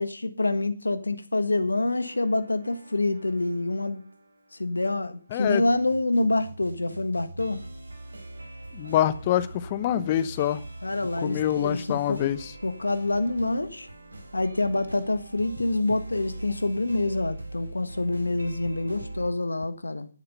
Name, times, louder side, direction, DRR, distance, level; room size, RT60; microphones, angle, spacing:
voice 1, 0.0-4.0 4.6-7.6 10.8-12.2 12.6-13.9 14.3-20.1, left 2 dB, 80° left, 1.5 m, -26 dB
sound 1, 2.0-19.3, right 2 dB, 75° right, 4.4 m, -42 dB
voice 2, 5.3-5.6 8.7-10.6 11.2-12.5, left 11 dB, 30° left, 1.0 m, -25 dB
11.5 x 9.9 x 5.5 m
figure-of-eight pair, 145°, 0 cm